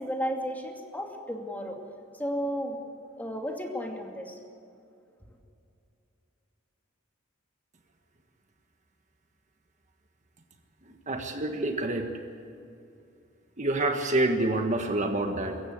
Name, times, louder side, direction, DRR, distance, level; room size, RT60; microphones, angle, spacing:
voice 1, 0.0-1.8 2.1-2.8 3.1-4.4, equal, 10° left, 2 dB, 2.5 m, -33 dB
voice 2, 10.9-12.1 13.6-15.6, right 2 dB, 35° right, 4 dB, 1.6 m, -27 dB
24.0 x 15.0 x 8.1 m, 2.6 s
head